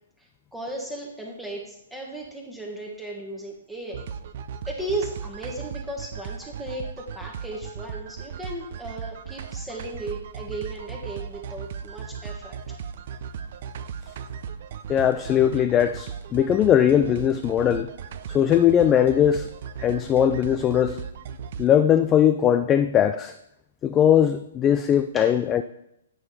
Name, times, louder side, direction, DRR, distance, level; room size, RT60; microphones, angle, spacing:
voice 1, 0.2-4.1 4.7-12.8 25.1-25.3, right 1 dB, 5° right, -1 dB, 1.2 m, -36 dB
sound 1, 3.9-21.7, right 7 dB, 50° right, 0.5 m, -37 dB
voice 2, 14.9-17.9 18.3-19.5 19.8-21.0 21.6-23.3 23.8-25.6, left 9 dB, 20° left, 9 dB, 0.3 m, -20 dB
8.7 x 4.8 x 4.1 m, 0.81 s
hypercardioid pair, 125°, 0 cm